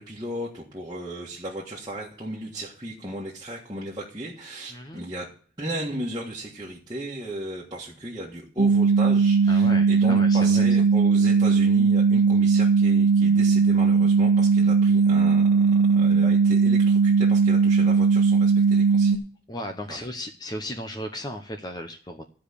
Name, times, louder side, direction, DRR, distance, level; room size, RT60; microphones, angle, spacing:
voice 1, 0.0-5.3 5.6-19.2 19.9-20.1, right 1 dB, 20° right, -6 dB, 1.7 m, -35 dB
voice 2, 4.7-5.0 9.5-10.9 19.5-22.3, left 1 dB, 20° left, 5 dB, 0.8 m, -35 dB
sound 1, 8.6-19.2, right 5 dB, 85° right, 1.2 m, -19 dB
13.5 x 5.1 x 8.4 m, 0.43 s
head